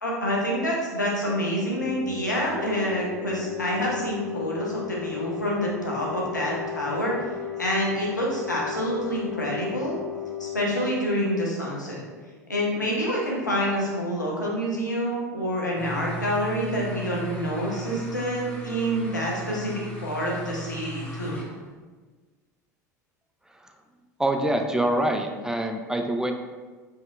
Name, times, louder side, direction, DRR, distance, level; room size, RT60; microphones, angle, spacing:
voice 1, 0.0-7.1 7.6-9.9 10.4-12.0 12.5-19.7 20.0-21.4, equal, 90° left, -4 dB, 0.8 m, -27 dB
sound 1, 1.2-12.7, left 9 dB, 80° right, 1.1 m, -35 dB
sound 2, 15.8-21.7, left 1 dB, 15° left, 1.1 m, -37 dB
voice 2, 24.2-26.3, right 1 dB, 5° right, 4 dB, 0.3 m, -25 dB
4.0 x 3.5 x 2.4 m, 1.4 s
figure-of-eight pair, 75°, 9 cm